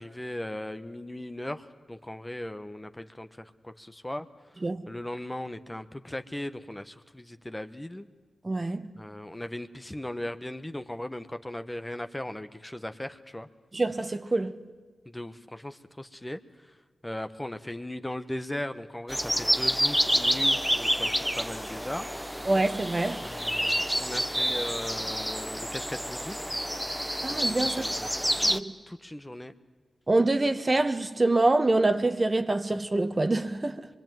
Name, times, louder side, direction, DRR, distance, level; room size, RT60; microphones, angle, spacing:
voice 1, 0.0-4.3 4.9-8.1 9.0-13.5 15.0-16.7 17.0-22.1 23.2-26.4 27.8-28.3 28.9-29.5, left 1 dB, 15° left, 1.4 m, -38 dB
voice 2, 8.4-8.9 13.7-14.5 22.4-23.2 27.2-27.8 28.4-28.7 30.1-33.9, right 2 dB, 40° right, 1.4 m, -25 dB
sound 1, 19.1-28.6, equal, ahead, 1.2 m, -28 dB
23.5 x 23.0 x 9.3 m
cardioid pair, 45°, 0 cm